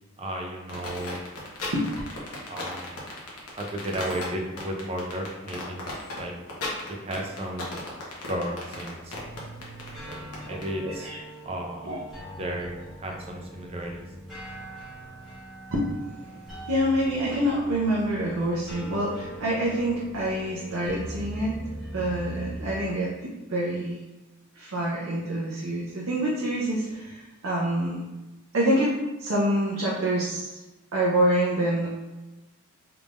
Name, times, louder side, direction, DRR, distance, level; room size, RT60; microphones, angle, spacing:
voice 1, 0.2-1.2 2.5-3.0 3.5-5.8 6.2-6.3 6.9-7.8 8.2-9.2 10.1-10.2 10.5-11.1 11.4-11.9 12.4-14.0, right 1 dB, 25° right, 1 dB, 0.4 m, -33 dB
sound 1, 0.7-10.7, left 2 dB, 85° left, 1.0 m, -36 dB
sound 2, 9.1-22.8, right 1 dB, ahead, 1.2 m, -41 dB
voice 2, 10.8-11.2 11.8-12.0 15.7-16.3 16.7-21.6 21.9-24.0 24.5-28.0 28.5-30.6 30.9-31.9, right 1 dB, 70° right, -5 dB, 0.7 m, -26 dB
3.6 x 3.4 x 2.5 m, 1.1 s
head